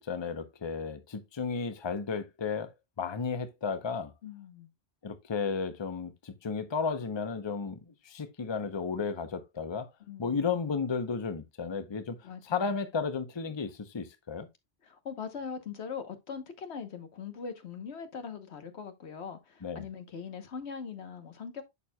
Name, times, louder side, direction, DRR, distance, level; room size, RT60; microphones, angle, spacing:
voice 1, 0.0-2.7 3.0-4.1 5.0-9.9 10.2-12.2 12.4-14.5 19.6-19.9, left 5 dB, 30° left, 0.7 m, -33 dB
voice 2, 4.2-4.7 10.1-10.4 12.2-12.7 14.8-21.6, left 6 dB, 80° left, 1.3 m, -41 dB
11.0 x 4.4 x 2.2 m
omnidirectional pair, 1.1 m